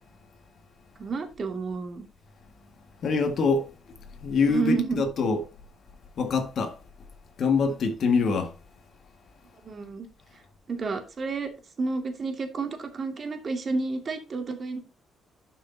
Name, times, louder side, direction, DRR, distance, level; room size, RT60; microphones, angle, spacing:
voice 1, 1.0-2.1 4.5-5.0 9.6-10.1 10.7-11.5 11.8-14.8, right 4 dB, 40° right, 2.3 m, -30 dB
voice 2, 3.0-3.9 4.2-5.5 6.2-6.8 7.4-8.5, left 4 dB, 60° left, 1.8 m, -25 dB
11.0 x 6.2 x 2.8 m
cardioid pair, 90°, 0 cm